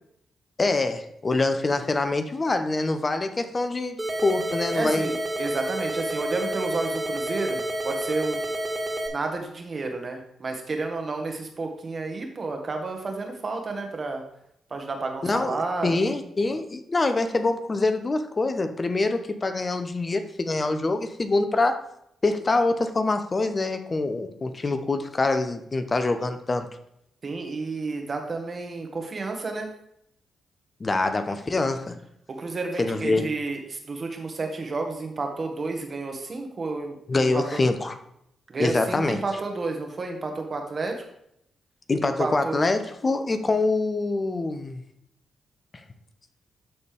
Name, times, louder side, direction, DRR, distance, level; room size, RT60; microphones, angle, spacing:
voice 1, 0.6-5.1 15.2-21.8 22.2-26.7 30.8-32.0 32.8-33.3 37.1-38.0 38.6-39.2 41.9-44.8, left 3 dB, 35° left, 8 dB, 0.8 m, -25 dB
sound 1, 4.0-9.1, right 1 dB, 20° right, 2.3 m, -29 dB
voice 2, 4.7-8.4 9.1-14.2 14.7-15.9 27.2-29.7 32.3-37.6 38.5-41.0 42.0-42.6, right 3 dB, 45° right, 3 dB, 1.7 m, -31 dB
12.5 x 4.2 x 3.5 m, 0.75 s
supercardioid pair, 50°, 0 cm